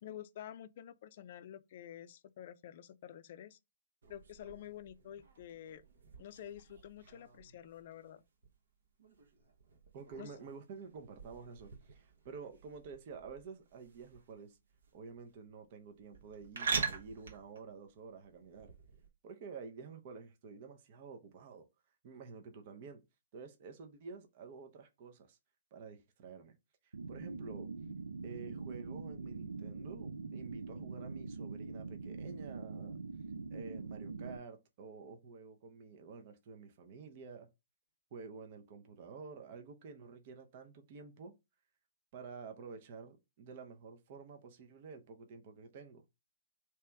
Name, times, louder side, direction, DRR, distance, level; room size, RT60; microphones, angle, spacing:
voice 1, 0.0-3.6 4.1-5.8 6.2-8.2 10.2-10.3, left 10 dB, 50° left, 0.4 m, -49 dB
sound 1, 4.0-19.1, right 5 dB, 70° right, 0.9 m, -45 dB
voice 2, 9.9-14.6 14.9-18.7 19.2-21.7 22.0-23.0 23.3-25.4 25.7-26.6 26.8-27.7 28.2-33.0 33.5-37.5 38.1-41.3 42.1-46.0, right 5 dB, 45° right, 0.7 m, -50 dB
sound 2, 26.9-34.4, right 4 dB, 85° right, 0.5 m, -43 dB
3.3 x 2.9 x 3.3 m
hypercardioid pair, 140°, 0 cm